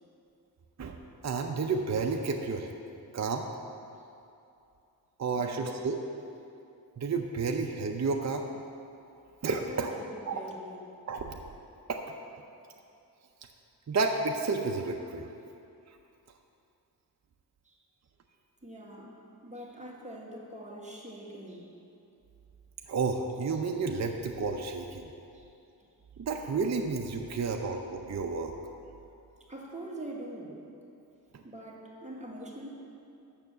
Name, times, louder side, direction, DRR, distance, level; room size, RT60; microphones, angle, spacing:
voice 1, 1.2-2.7 3.1-3.5 5.2-6.0 7.0-8.5 9.4-10.0 10.3-10.4 11.1-11.4 11.9-12.0 13.9-15.3 15.9-16.0 22.9-25.1 26.2-28.5 31.3-31.4, right 4 dB, 45° right, 3 dB, 0.6 m, -31 dB
voice 2, 5.4-5.7 9.6-10.8 17.6-17.8 18.6-19.1 19.4-21.7 25.3-25.5 25.8-25.9 29.5-30.6 31.4-32.7, right 1 dB, 20° right, -3 dB, 1.7 m, -43 dB
7.0 x 6.2 x 6.7 m, 2.7 s
cardioid pair, 60°, 39 cm